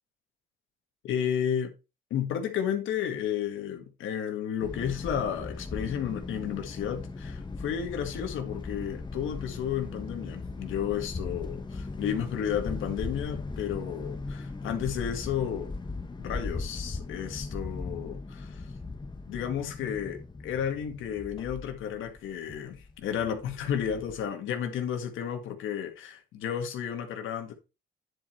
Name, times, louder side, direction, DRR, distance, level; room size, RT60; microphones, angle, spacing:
voice 1, 1.0-1.7 2.1-15.7 16.2-18.7 19.3-27.5, left 9 dB, 85° left, 1.9 m, -32 dB
sound 1, 4.6-24.3, left 3 dB, 20° left, 1.3 m, -38 dB
10.0 x 4.8 x 4.3 m
cardioid pair, 90°, 20 cm